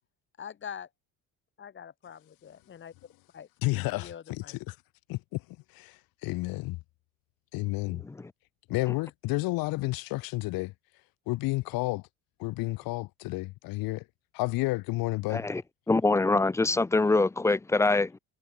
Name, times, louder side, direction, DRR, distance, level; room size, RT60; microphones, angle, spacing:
voice 1, 0.4-0.9 1.6-2.9 3.3-3.5 3.9-4.5, left 8 dB, 35° left, 5.2 m, -43 dB
voice 2, 3.6-4.8 5.1-5.4 5.7-6.8 7.5-8.0 8.7-10.7 11.3-12.1 12.4-14.0 14.3-15.4, left 21 dB, 90° left, 5.8 m, -31 dB
voice 3, 15.3-15.6 15.9-18.2, left 3 dB, 10° left, 0.4 m, -24 dB
cardioid pair, 155°, 34 cm